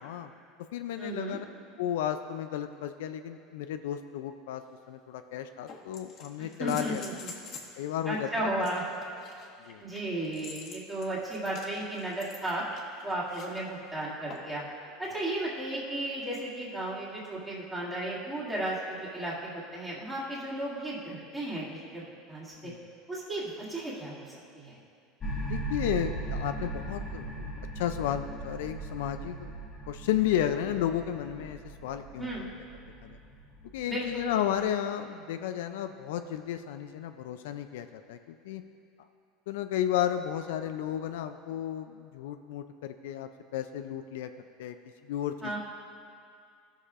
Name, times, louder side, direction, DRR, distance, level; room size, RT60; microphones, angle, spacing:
voice 1, 0.0-0.3 0.7-1.5 1.8-4.6 4.9-7.0 7.8-8.3 9.7-9.8 22.6-22.8 25.3-27.5 27.8-29.5 29.9-32.5 33.0-33.2 33.7-38.6 39.5-44.3 44.6-44.8 45.0-45.6, left 10 dB, 85° left, 8 dB, 0.4 m, -33 dB
voice 2, 1.0-1.4 6.6-7.3 8.0-8.8 9.8-12.6 13.0-14.6 15.0-22.7 23.1-24.8 32.2-32.5 33.9-34.3 45.4-45.6, right 1 dB, 10° right, -9 dB, 2.2 m, -34 dB
sound 1, 4.6-4.7 5.7-7.8 8.6-13.6 14.3-14.6 16.3-16.4, left 4 dB, 45° left, 1.4 m, -47 dB
sound 2, 25.2-34.6, right 2 dB, 20° left, 1.0 m, -38 dB
16.5 x 6.5 x 2.5 m, 2.3 s
supercardioid pair, 135°, 0 cm